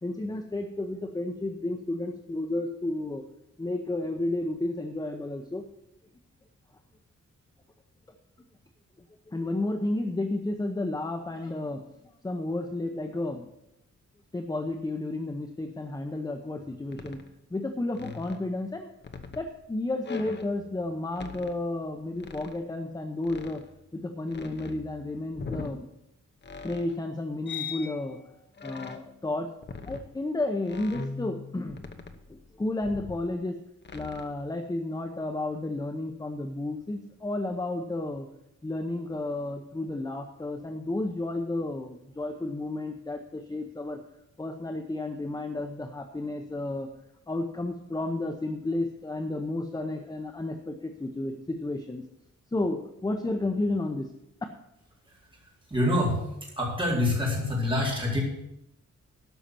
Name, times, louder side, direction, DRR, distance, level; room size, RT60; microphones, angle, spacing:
voice 1, 0.0-3.2 3.6-5.6 9.3-11.8 12.2-13.5 14.3-17.2 17.5-18.9 19.4-23.6 23.9-25.9 26.6-28.2 28.6-29.5 29.9-31.8 32.3-33.6 33.9-38.3 38.6-44.0 44.4-46.9 47.3-52.0 52.5-54.1, left 2 dB, 15° left, 5 dB, 0.7 m, -32 dB
sound 1, 16.6-16.7 16.9-17.3 17.9-19.5 20.0-20.9 21.1-22.6 23.2-23.9 24.3-25.7 26.4-27.0 27.5-28.1 28.6-29.2 29.6-30.1 30.7-32.4 32.8-33.3 33.8-34.3, left 5 dB, 35° left, 0.9 m, -41 dB
voice 2, 55.1-56.3 56.6-58.2, left 1 dB, 15° right, -4 dB, 4.0 m, -27 dB
12.5 x 5.6 x 7.5 m, 0.83 s
wide cardioid pair, 160°, 30 cm